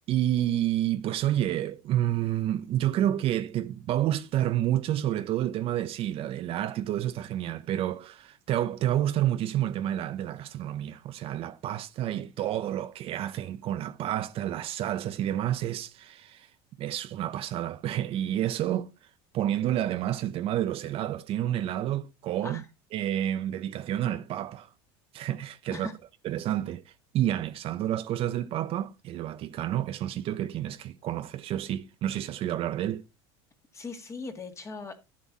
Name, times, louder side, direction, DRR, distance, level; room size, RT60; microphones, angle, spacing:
voice 1, 0.1-16.5 16.8-18.9 19.3-22.6 22.9-24.7 25.1-25.9 26.2-26.8 27.1-33.0, right 12 dB, 50° right, 0.9 m, -29 dB
voice 2, 33.7-35.0, left 4 dB, 20° left, 2.1 m, -39 dB
12.0 x 7.5 x 4.1 m
supercardioid pair, 115°, 13 cm